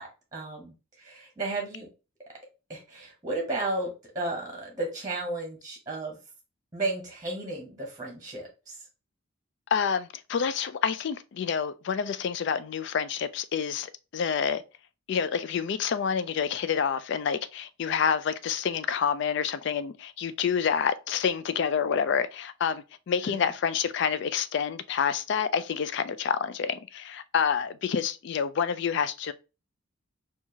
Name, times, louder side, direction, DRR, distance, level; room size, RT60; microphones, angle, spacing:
voice 1, 0.0-1.9 2.7-6.2 6.7-8.8 23.3-23.5, right 2 dB, 15° right, 0.9 m, -34 dB
voice 2, 9.7-14.6 15.1-29.3, left 7 dB, 55° left, 0.3 m, -28 dB
4.3 x 2.4 x 2.7 m
head